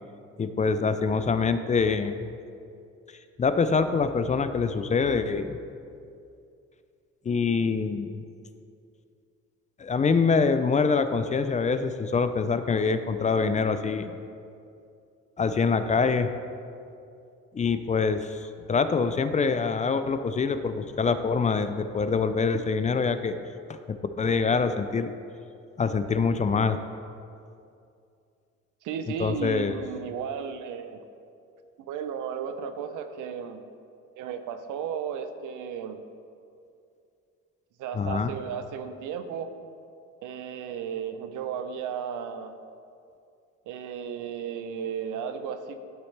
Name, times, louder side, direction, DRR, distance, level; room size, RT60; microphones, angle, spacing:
voice 1, 0.4-2.3 3.4-5.6 7.3-8.2 9.8-14.1 15.4-16.3 17.5-23.3 23.7-25.1 25.8-26.8 29.2-29.8 37.9-38.3, left 5 dB, 25° left, 10 dB, 0.3 m, -25 dB
voice 2, 28.8-31.0 31.8-33.6 34.2-36.0 37.8-39.5 40.2-42.5 43.7-45.8, right 7 dB, 85° right, 9 dB, 0.6 m, -34 dB
12.0 x 4.0 x 3.2 m, 2.5 s
cardioid pair, 90°, 30 cm